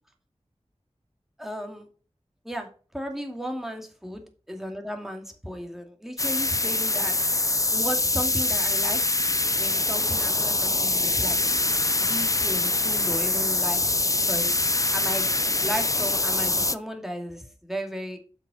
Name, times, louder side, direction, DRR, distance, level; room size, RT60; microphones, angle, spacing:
voice 1, 1.4-1.9 2.4-4.2 4.5-7.1 7.7-9.0 9.6-11.4 12.0-14.0 14.3-15.3 15.6-18.2, equal, 5° right, 3 dB, 2.3 m, -35 dB
sound 1, 6.2-16.7, left 2 dB, 30° left, 0.5 m, -24 dB
7.8 x 6.0 x 5.0 m, 0.38 s
wide cardioid pair, 55°, 12 cm